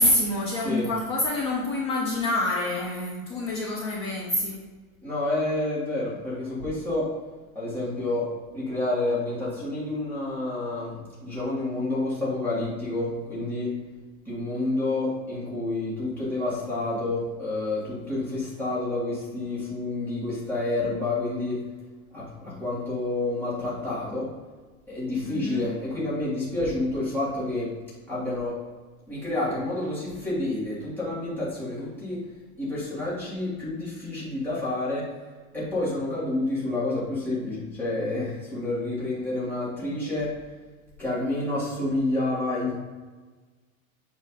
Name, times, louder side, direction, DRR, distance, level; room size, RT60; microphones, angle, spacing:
voice 1, 0.0-4.6 25.2-25.7, left 1 dB, 20° left, -3 dB, 0.4 m, -26 dB
voice 2, 5.0-7.1 7.5-8.3 8.5-13.7 14.2-21.6 22.1-24.3 24.9-27.7 28.1-28.6 29.1-32.2 32.6-35.1 35.5-40.3 41.0-42.8, left 2 dB, 5° left, -9 dB, 1.7 m, -29 dB
7.4 x 3.0 x 5.4 m, 1.3 s
supercardioid pair, 175°, 43 cm